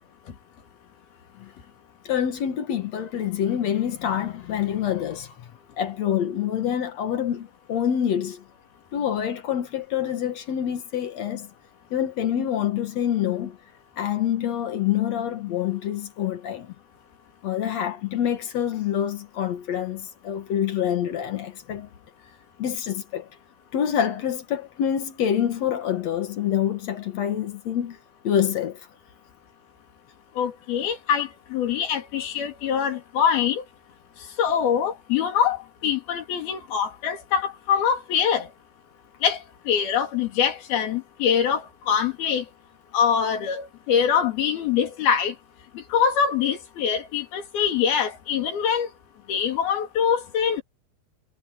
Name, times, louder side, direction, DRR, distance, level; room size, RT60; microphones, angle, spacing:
voice 1, 2.1-5.3 5.8-8.4 8.9-11.5 11.9-13.6 14.0-16.7 17.4-21.9 22.6-23.3 23.7-28.0 28.2-28.8, left 9 dB, 55° left, 2.1 m, -26 dB
voice 2, 30.4-33.6 34.4-35.6 35.8-38.5 39.2-39.4 39.7-42.4 42.9-45.3 45.9-48.9 49.3-50.6, left 8 dB, 75° left, 4.6 m, -24 dB
omnidirectional pair, 4.5 m